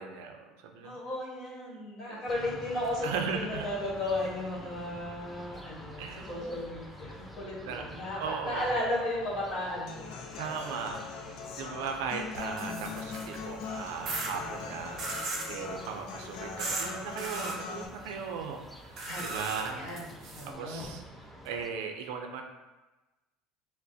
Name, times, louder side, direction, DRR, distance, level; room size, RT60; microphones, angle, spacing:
voice 1, 0.0-1.0 2.1-2.3 3.0-3.7 6.0-6.3 7.6-7.8 8.2-8.8 10.4-19.9 20.5-21.0 21.4-22.4, right 6 dB, 85° right, 4 dB, 0.5 m, -37 dB
voice 2, 0.8-10.1 12.6-13.2 19.0-20.1 20.3-20.8, left 1 dB, 40° left, -6 dB, 1.4 m, -35 dB
sound 1, 2.3-21.7, equal, ahead, 0.4 m, -48 dB
Human voice / Acoustic guitar, 9.9-17.9, left 5 dB, 55° left, 0.5 m, -41 dB
sound 2, 12.3-13.4 14.0-14.3 15.0-15.5 16.6-16.9 17.2-17.6 19.0-20.5, right 3 dB, 40° right, 0.7 m, -36 dB
6.1 x 2.1 x 2.7 m, 1.1 s
cardioid pair, 160°, 0 cm